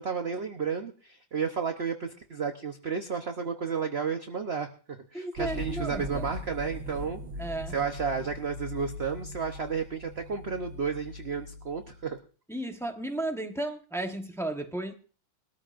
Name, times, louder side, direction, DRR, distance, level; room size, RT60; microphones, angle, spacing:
voice 1, 0.0-7.2 7.7-12.2, right 6 dB, 45° right, 5 dB, 0.9 m, -32 dB
voice 2, 5.1-6.3 7.4-7.7 12.5-14.9, right 1 dB, ahead, 4 dB, 0.7 m, -34 dB
sound 1, 5.4-12.1, left 1 dB, 75° right, 1.8 m, -40 dB
21.5 x 13.5 x 2.5 m, 0.38 s
omnidirectional pair, 2.1 m